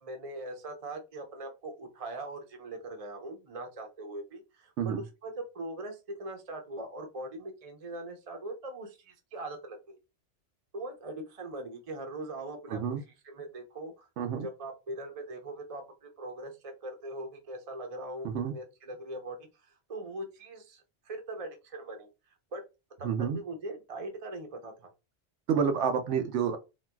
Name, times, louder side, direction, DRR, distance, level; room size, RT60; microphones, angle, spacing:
voice 1, 0.0-10.0 10.7-12.8 13.2-14.1 14.4-19.4 19.9-22.1 22.5-22.6 23.3-24.9, right 2 dB, 35° right, 0.6 m, -41 dB
voice 2, 12.7-13.0 14.2-14.5 18.2-18.5 23.0-23.4 25.5-26.6, right 7 dB, 80° right, 0.9 m, -29 dB
3.9 x 2.3 x 2.2 m
omnidirectional pair, 1.2 m